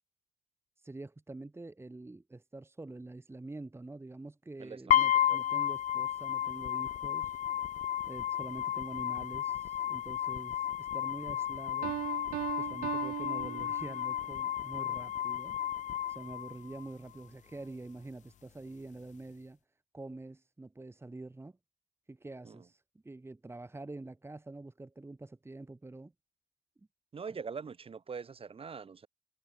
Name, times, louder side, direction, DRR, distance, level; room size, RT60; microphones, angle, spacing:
voice 1, 0.8-7.4 8.0-12.0 12.6-15.6 16.1-19.6 19.9-21.5 22.1-26.1, right 2 dB, 20° right, 2.9 m, -46 dB
voice 2, 4.6-5.4 22.4-22.7 27.1-29.1, right 5 dB, 40° right, 6.0 m, -43 dB
sound 1, 4.9-16.9, left 11 dB, 60° left, 0.8 m, -33 dB
Piano, 11.8-14.3, right 19 dB, 85° right, 0.8 m, -38 dB
supercardioid pair, 65°, 14 cm